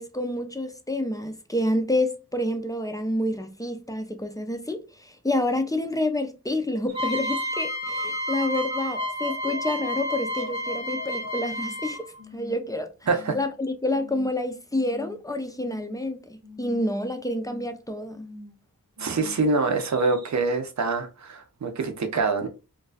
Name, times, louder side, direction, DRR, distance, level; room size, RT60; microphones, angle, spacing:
voice 1, 0.0-12.0 12.3-12.9 13.3-18.3, left 1 dB, 10° left, 0.4 m, -28 dB
sound 1, 6.9-12.2, left 1 dB, 15° right, 0.9 m, -30 dB
sound 2, 6.9-11.8 12.2-12.7 13.0-13.5 13.9-14.3 14.7-15.3 15.6-16.1 16.4-16.9 17.2-17.7 18.1-18.6 19.0-19.4 19.8-20.3, left 1 dB, 70° right, 0.9 m, -44 dB
voice 2, 19.0-22.5, right 3 dB, 50° right, 0.5 m, -25 dB
2.3 x 2.3 x 2.3 m
wide cardioid pair, 50°, 37 cm